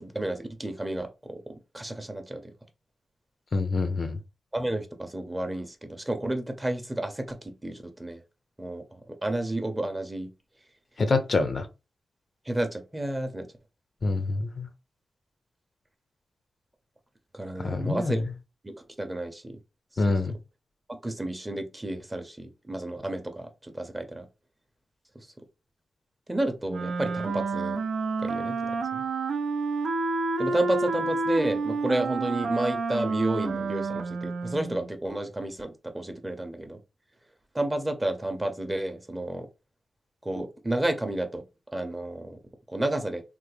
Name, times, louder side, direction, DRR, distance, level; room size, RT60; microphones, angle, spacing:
voice 1, 0.0-2.5 4.5-8.2 8.6-10.3 12.5-13.5 17.3-18.2 18.6-19.6 20.9-24.3 26.3-27.8 28.2-29.0 30.4-36.8 37.5-39.5 40.2-41.4 41.7-42.4 42.7-43.2, right 1 dB, 15° right, 0.6 m, -31 dB
voice 2, 3.5-4.2 11.0-11.7 14.0-14.7 17.6-18.2 20.0-20.4, left 3 dB, 50° left, 0.5 m, -26 dB
Wind instrument woodwind instrument, 26.7-34.9, right 3 dB, 85° right, 0.5 m, -29 dB
3.3 x 2.1 x 3.2 m
wide cardioid pair, 90°, 0 cm